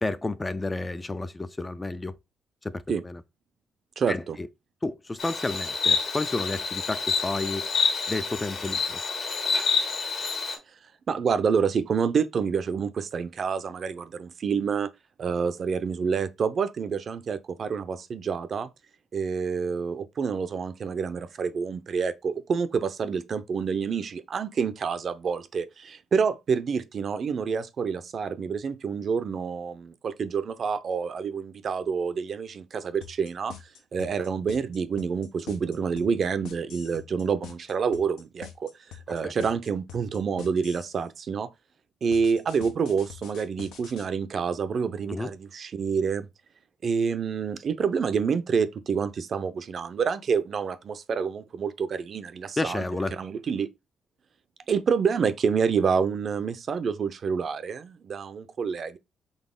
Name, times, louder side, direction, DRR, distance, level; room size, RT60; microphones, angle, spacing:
voice 1, 0.0-2.1 2.6-3.2 4.1-4.5 4.8-7.7 8.1-9.0 39.1-39.3 45.1-45.3 52.6-53.1, left 2 dB, 20° left, 0.3 m, -31 dB
voice 2, 4.0-4.4 11.1-14.9 15.2-18.7 19.1-33.5 33.9-38.7 39.1-41.5 42.0-46.3 46.8-52.8 53.1-53.7 54.7-59.0, right 6 dB, 50° right, 0.5 m, -28 dB
Insect, 5.2-10.6, left 5 dB, 55° left, 1.4 m, -28 dB
sound 1, 33.0-41.0 42.1-44.1, left 8 dB, 90° left, 0.8 m, -44 dB
4.0 x 3.5 x 3.7 m
cardioid pair, 90°, 0 cm